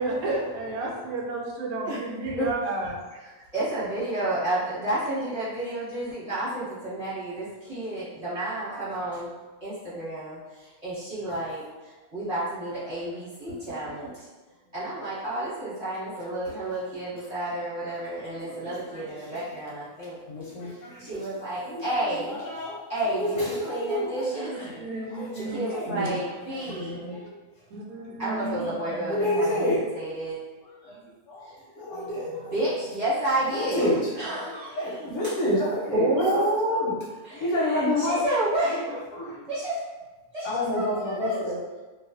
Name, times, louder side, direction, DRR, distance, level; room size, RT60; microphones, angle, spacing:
voice 1, 0.0-2.9 8.4-8.5 23.8-25.6 25.9-26.2 26.7-27.1 27.7-29.6 31.9-32.5 35.9-37.0, right 2 dB, 80° right, -2 dB, 1.0 m, -30 dB
voice 2, 3.5-9.3 9.6-14.3 14.7-20.2 20.7-22.4 22.9-24.5 25.5-27.0 28.2-30.4 31.4-31.5 32.3-35.3 37.2-38.8 39.5-39.8 40.3-41.4, right 1 dB, 30° right, -12 dB, 1.0 m, -31 dB
voice 3, 18.4-19.0 19.3-19.4 20.3-21.0 21.6-21.9 22.3-22.8 23.1-24.8 25.1-26.1 26.5-26.8 27.1-27.3 28.5-29.8 30.8-31.0 31.3-31.5 31.8-32.3 33.5-34.0 34.3-36.9 37.3-38.2 39.1-39.4 40.4-41.6, left 1 dB, 70° left, -6 dB, 0.8 m, -29 dB
2.4 x 2.4 x 2.3 m, 1.2 s
omnidirectional pair, 1.6 m